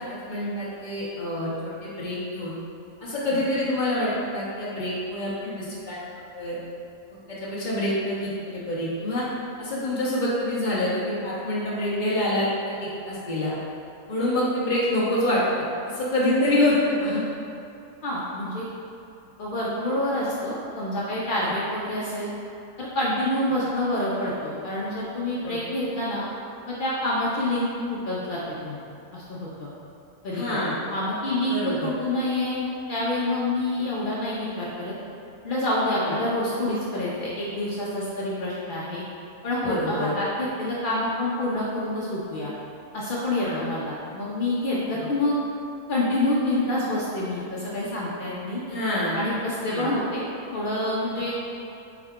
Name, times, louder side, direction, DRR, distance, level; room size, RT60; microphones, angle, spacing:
voice 1, 0.0-2.5 3.0-5.9 6.3-6.6 7.3-9.2 9.6-12.8 13.0-13.5 14.1-15.6 15.9-17.2 21.4-21.5 25.4-25.6 30.3-30.8 31.5-31.9 36.0-36.1 39.6-40.2 43.4-43.6 48.7-49.2 49.7-49.9, left 1 dB, 45° left, -8 dB, 0.7 m, -26 dB
voice 2, 18.0-18.7 19.4-22.3 22.8-26.2 26.7-28.8 29.1-29.7 30.2-35.0 35.4-39.0 39.4-42.5 42.9-45.3 45.9-48.6 49.1-50.2 50.5-51.3, left 1 dB, 80° left, -7 dB, 0.4 m, -27 dB
4.6 x 2.2 x 3.5 m, 2.8 s
omnidirectional pair, 1.6 m